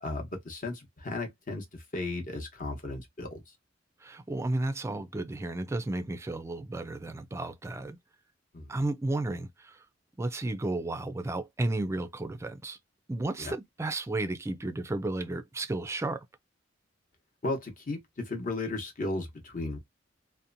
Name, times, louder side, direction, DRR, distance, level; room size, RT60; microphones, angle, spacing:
voice 1, 0.0-3.4 8.5-8.7 13.4-13.5 17.4-19.8, left 2 dB, 45° left, 0.9 m, -35 dB
voice 2, 4.0-8.0 8.7-9.8 10.2-12.8 13.1-16.2, right 2 dB, 15° right, 0.3 m, -33 dB
2.8 x 2.1 x 2.5 m
head